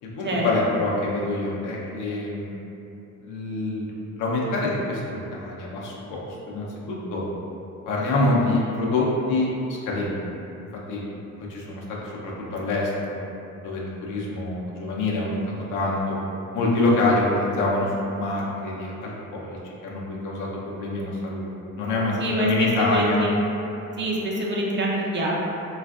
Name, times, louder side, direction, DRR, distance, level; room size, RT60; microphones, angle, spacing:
voice 1, 0.0-2.6 3.2-7.2 7.9-10.4 10.7-11.0 11.4-13.1 13.6-15.4 15.7-16.2 16.5-19.6 19.8-21.5 21.8-22.1 22.4-23.2, left 2 dB, 90° left, -4 dB, 0.6 m, -26 dB
voice 2, 22.2-23.3 24.0-25.4, right 1 dB, 40° right, -4 dB, 0.6 m, -25 dB
3.3 x 2.4 x 2.3 m, 2.9 s
cardioid pair, 90°, 30 cm